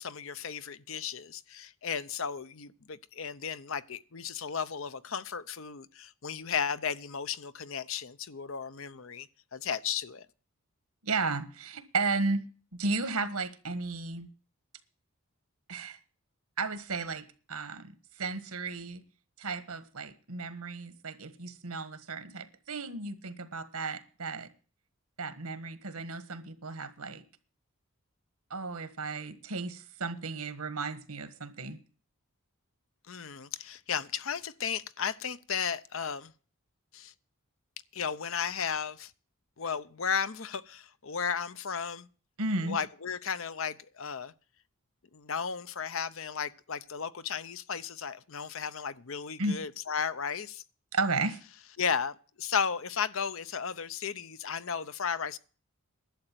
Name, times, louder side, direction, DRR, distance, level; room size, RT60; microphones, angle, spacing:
voice 1, 0.0-10.3 33.1-36.3 36.9-37.1 37.9-39.1 39.6-42.1 42.6-44.3 45.1-50.6 51.8-55.4, left 6 dB, 65° left, 0.7 m, -34 dB
voice 2, 11.0-12.4 12.7-14.3 15.7-16.0 16.6-19.0 19.4-24.5 25.2-27.2 28.5-31.8 42.4-42.8 49.4-49.6 50.9-51.4, right 3 dB, 85° right, 1.5 m, -34 dB
11.5 x 7.9 x 7.5 m
head